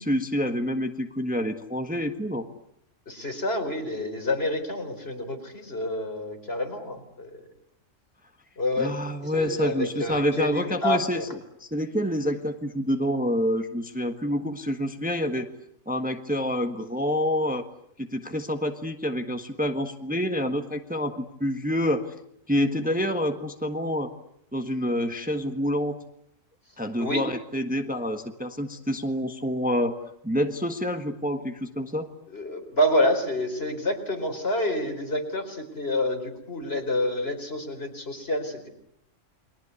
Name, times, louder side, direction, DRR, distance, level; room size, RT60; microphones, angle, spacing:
voice 1, 0.0-2.5 8.8-11.3 11.6-15.5 15.9-17.7 18.0-22.1 22.5-24.1 24.5-26.0 26.8-30.0 30.2-32.1, equal, 5° right, 6 dB, 1.4 m, -27 dB
voice 2, 3.1-7.4 8.6-8.9 9.2-11.3 27.0-27.3 32.3-38.7, left 1 dB, 55° left, 5 dB, 4.6 m, -28 dB
29.5 x 22.5 x 8.3 m, 0.75 s
omnidirectional pair, 1.3 m